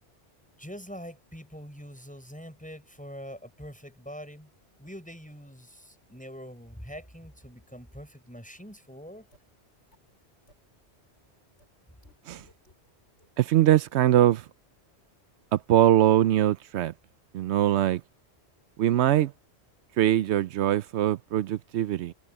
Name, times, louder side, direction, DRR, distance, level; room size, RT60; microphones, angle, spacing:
voice 1, 0.6-4.5 4.8-9.3, equal, 5° left, 7.0 m, -44 dB
sound 1, 9.3-9.4 9.9-10.0 10.5-10.6 11.6-11.7 12.0-12.7 13.2-13.3, left 1 dB, 80° left, 7.8 m, -58 dB
voice 2, 13.4-14.4 15.5-16.9 17.3-18.0 18.8-19.3 20.0-22.1, right 12 dB, 85° right, 0.9 m, -22 dB
omnidirectional pair, 1.1 m